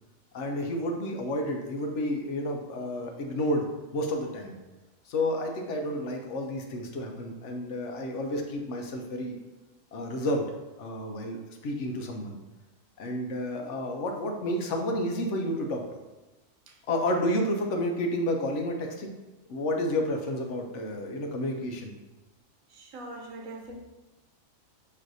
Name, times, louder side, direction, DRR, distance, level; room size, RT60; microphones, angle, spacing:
voice 1, 0.3-3.7 3.9-4.5 5.1-9.4 9.9-10.5 10.8-12.4 13.0-15.8 16.9-19.1 19.5-21.9, left 1 dB, 70° left, 3 dB, 0.9 m, -30 dB
voice 2, 22.8-23.7, right 2 dB, 90° right, 2 dB, 1.1 m, -42 dB
6.0 x 3.2 x 2.6 m, 1.1 s
omnidirectional pair, 1.4 m